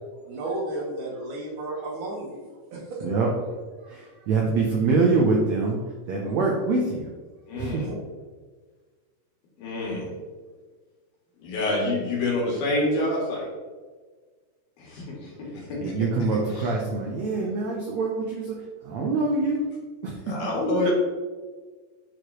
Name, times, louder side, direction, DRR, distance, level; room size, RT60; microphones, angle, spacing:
voice 1, 0.3-3.1 6.3-6.4 7.5-7.9, right 2 dB, 60° right, -3 dB, 2.7 m, -34 dB
voice 2, 3.0-3.5 3.8-7.1 7.6-7.9 15.5-19.6 20.0-20.3, right 3 dB, 80° right, -1 dB, 1.6 m, -25 dB
voice 3, 7.5-7.8 9.6-10.1 11.4-13.5 14.8-15.8 16.6-16.7 20.3-20.9, left 2 dB, 80° left, -4 dB, 4.0 m, -27 dB
10.5 x 5.0 x 3.1 m, 1.4 s
omnidirectional pair, 4.3 m